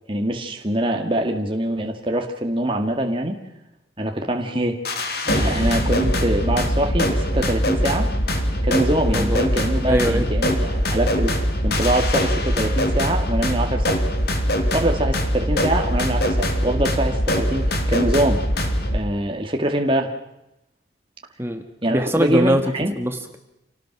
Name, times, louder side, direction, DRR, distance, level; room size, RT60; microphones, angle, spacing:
voice 1, 0.1-3.4 4.0-4.8 5.2-8.1 8.6-11.3 11.6-14.0 14.7-18.4 18.9-20.1 21.8-22.9, right 1 dB, 30° right, 3 dB, 2.1 m, -23 dB
sound 1, 4.8-19.0, equal, 55° left, 3.1 m, -22 dB
voice 2, 9.9-10.3 21.4-22.6 23.0-23.4, right 1 dB, 15° right, 6 dB, 1.7 m, -22 dB
28.5 x 18.5 x 6.1 m, 0.89 s
head